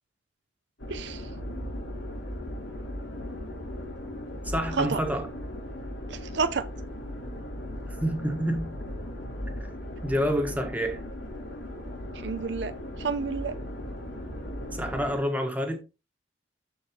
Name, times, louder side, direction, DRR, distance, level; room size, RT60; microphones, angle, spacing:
sound 1, 0.8-15.2, left 1 dB, 75° left, 3.6 m, -37 dB
voice 1, 0.9-1.2 4.8-5.0 6.1-6.7 12.2-13.6, right 4 dB, 65° right, 0.6 m, -30 dB
voice 2, 4.4-5.3 7.9-8.8 10.0-11.0 14.7-15.8, equal, 10° right, 1.6 m, -28 dB
13.0 x 4.7 x 3.0 m
head